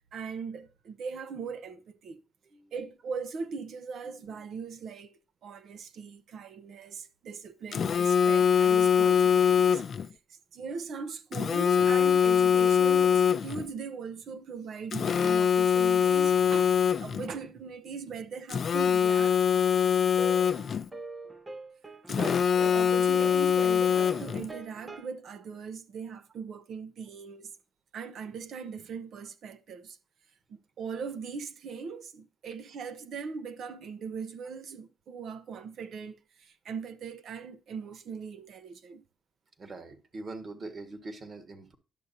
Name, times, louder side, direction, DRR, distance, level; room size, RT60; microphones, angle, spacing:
voice 1, 0.1-2.2 2.7-9.9 10.3-19.4 22.5-27.5 27.9-30.0 30.5-39.0, right 5 dB, 65° right, 0.8 m, -40 dB
voice 2, 4.0-4.3 22.0-22.4 39.6-41.8, right 3 dB, 40° right, 1.5 m, -42 dB
Telephone, 7.7-10.1 11.3-13.7 14.9-17.3 18.5-20.9 22.1-24.5, left 7 dB, 50° left, 0.4 m, -23 dB
sound 1, 20.2-25.1, right 2 dB, 20° right, 0.8 m, -44 dB
11.0 x 6.6 x 2.7 m
cardioid pair, 90°, 0 cm